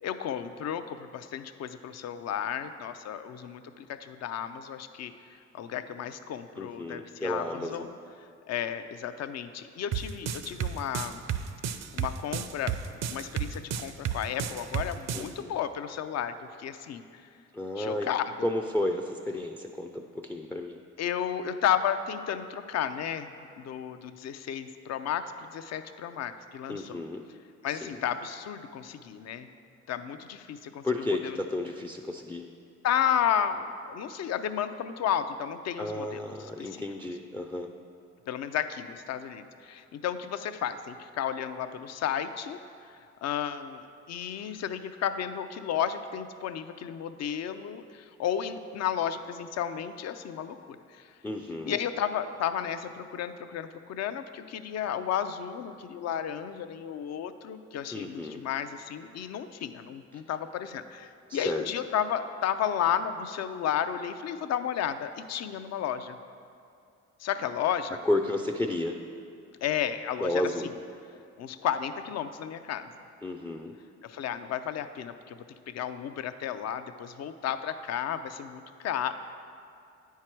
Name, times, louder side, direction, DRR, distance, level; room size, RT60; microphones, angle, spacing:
voice 1, 0.0-5.1 5.5-7.9 8.5-11.2 11.9-12.7 13.1-17.2 17.8-18.5 21.0-23.3 23.6-27.0 27.6-29.5 29.9-31.4 32.8-36.8 38.3-42.6 43.2-51.1 51.7-66.2 67.2-68.0 69.6-70.7 71.4-72.9 74.0-75.4 75.7-79.1, left 9 dB, 60° left, 11 dB, 0.5 m, -33 dB
voice 2, 6.6-7.9 15.1-15.5 17.5-18.1 18.4-20.8 26.7-27.2 27.7-28.0 30.8-32.5 35.8-37.7 51.2-51.8 57.9-58.4 61.3-61.7 68.0-69.0 70.2-70.7 73.2-73.7, left 1 dB, 5° left, 3 dB, 0.3 m, -32 dB
sound 1, 9.9-15.3, right 8 dB, 60° right, 0.5 m, -32 dB
9.6 x 4.7 x 4.5 m, 2.6 s
cardioid pair, 90°, 30 cm